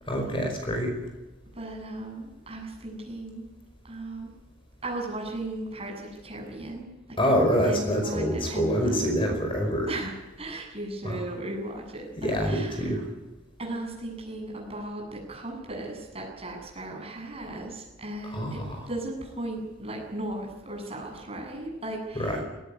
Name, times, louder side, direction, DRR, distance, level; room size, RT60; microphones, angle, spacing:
voice 1, 0.1-1.0 7.2-9.9 11.0-11.2 12.1-13.1 18.2-18.9 22.1-22.4, equal, 25° left, 3 dB, 5.0 m, -26 dB
voice 2, 1.5-3.5 3.8-4.3 4.8-7.2 7.6-9.2 9.9-13.0 13.6-18.6 18.9-22.4, right 1 dB, 30° right, 0 dB, 7.9 m, -36 dB
19.5 x 18.0 x 9.9 m, 1.1 s
head